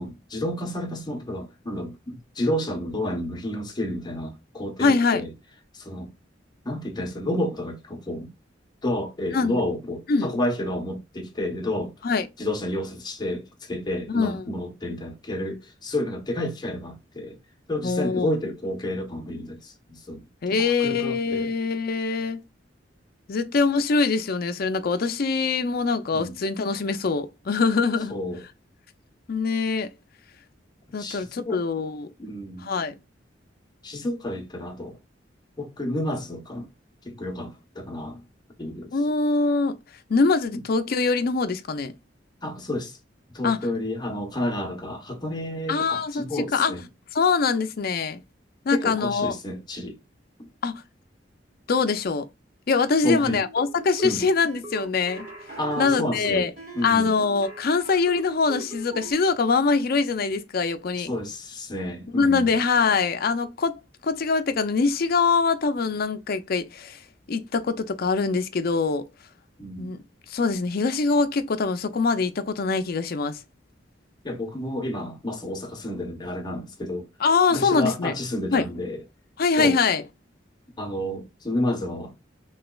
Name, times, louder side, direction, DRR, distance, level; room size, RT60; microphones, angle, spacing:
voice 1, 0.0-5.3 5.7-6.1 6.6-8.3 8.8-11.9 12.4-17.4 17.7-20.2 20.5-21.5 26.1-26.3 28.1-28.4 31.0-31.6 32.2-32.7 33.8-35.0 35.6-36.7 37.0-38.2 38.6-38.9 42.4-43.0 43.3-46.8 48.7-50.0 53.0-53.4 54.0-54.2 55.6-56.4 56.7-57.1 61.0-62.6 69.6-69.9 74.2-77.1 77.5-79.0 79.6-79.8 80.8-82.1, left 1 dB, 25° left, 0.9 m, -30 dB
voice 2, 4.8-5.2 9.3-9.6 10.1-10.3 12.0-12.3 14.1-14.4 17.8-18.4 20.4-22.4 23.3-28.1 29.3-29.9 30.9-32.1 32.6-33.0 38.9-39.8 40.1-41.9 43.4-43.6 45.7-46.7 47.1-48.2 48.7-49.3 50.6-50.8 51.7-52.3 52.7-55.3 55.8-56.5 56.8-61.1 62.1-67.0 67.3-69.1 69.8-70.0 70.3-73.4 77.2-78.1 78.5-78.6 79.4-80.0, left 4 dB, 55° left, 0.5 m, -23 dB
sound 1, 53.3-59.1, right 3 dB, 45° right, 1.8 m, -39 dB
3.2 x 3.0 x 2.3 m
head